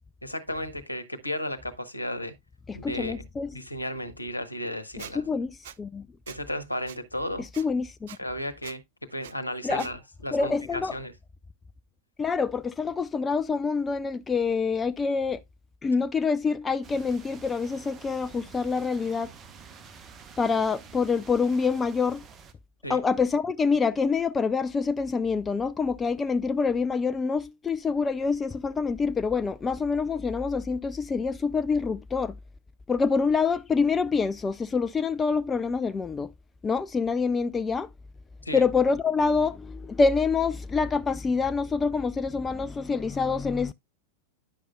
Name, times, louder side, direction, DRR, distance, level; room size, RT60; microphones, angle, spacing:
voice 1, 0.2-2.3 2.7-3.1 3.5-5.2 6.3-7.5 8.2-8.8 9.1-11.1 22.8-23.0 38.4-38.6, left 1 dB, 85° left, 1.1 m, -34 dB
voice 2, 2.7-3.6 5.0-6.1 7.4-8.2 9.6-9.9 10.3-11.0 12.2-15.4 15.8-19.3 20.4-22.2 22.9-32.4 32.9-36.3 36.6-37.9 38.5-43.7, left 5 dB, 15° left, 0.4 m, -26 dB
Squeak, 5.0-5.1 5.6-5.8 6.3-6.4 6.9-7.0 7.5-7.6 8.1-8.2 8.6-8.8 9.2-9.3 9.8-9.9, right 11 dB, 55° right, 0.5 m, -43 dB
sound 1, 16.8-22.5, right 6 dB, 25° right, 1.1 m, -48 dB
10.0 x 6.6 x 2.2 m
figure-of-eight pair, 90°, 0 cm